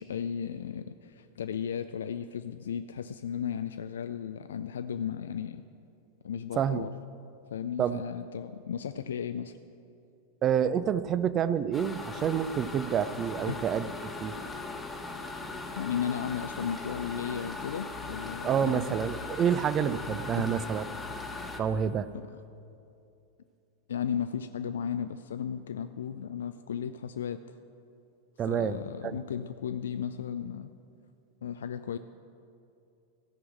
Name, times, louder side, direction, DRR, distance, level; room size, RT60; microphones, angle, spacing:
voice 1, 0.0-5.6 6.2-6.9 7.5-9.6 13.5-13.6 15.8-19.0 20.4-20.5 22.1-22.4 23.9-27.4 28.5-30.7 31.4-32.0, left 8 dB, 65° left, 10 dB, 0.3 m, -35 dB
voice 2, 6.6-6.9 7.8-8.0 10.4-13.9 14.2-14.3 18.4-20.8 21.6-22.1 28.4-29.2, right 8 dB, 30° right, 15 dB, 0.4 m, -28 dB
sound 1, 11.7-21.6, left 3 dB, 10° left, 1.0 m, -39 dB
15.0 x 6.1 x 7.3 m, 2.6 s
figure-of-eight pair, 90°, 0 cm